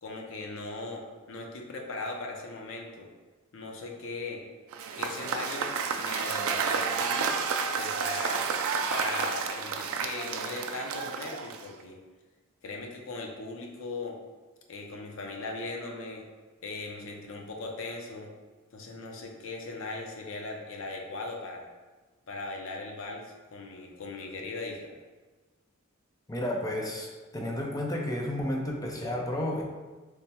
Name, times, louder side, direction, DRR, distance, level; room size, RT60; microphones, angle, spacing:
voice 1, 0.0-3.1 3.5-4.4 4.9-5.7 6.0-7.3 7.8-8.4 8.9-12.0 12.6-14.2 14.7-16.2 16.6-18.3 18.7-21.7 22.3-25.0, left 3 dB, 65° left, 1 dB, 0.6 m, -38 dB
Cheering / Applause / Crowd, 4.7-11.8, right 6 dB, 80° right, 0.3 m, -31 dB
voice 2, 26.3-29.6, left 1 dB, 15° left, -1 dB, 0.5 m, -32 dB
3.4 x 2.1 x 4.2 m, 1.3 s
head